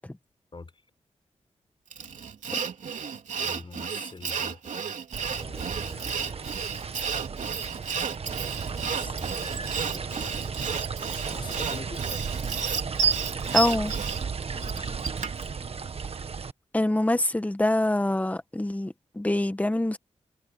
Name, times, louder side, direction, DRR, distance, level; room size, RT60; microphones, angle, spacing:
Sawing, 1.9-15.5, right 6 dB, 80° right, 3.2 m, -31 dB
voice 1, 3.4-4.6 5.3-6.5 8.6-10.8 11.3-12.1 14.6-15.0, left 4 dB, 40° left, 5.6 m, -44 dB
sound 1, 5.1-16.5, right 5 dB, 50° right, 1.4 m, -34 dB
voice 2, 13.5-13.9 16.7-20.0, left 1 dB, 10° left, 1.4 m, -25 dB
cardioid pair, 75°, 13 cm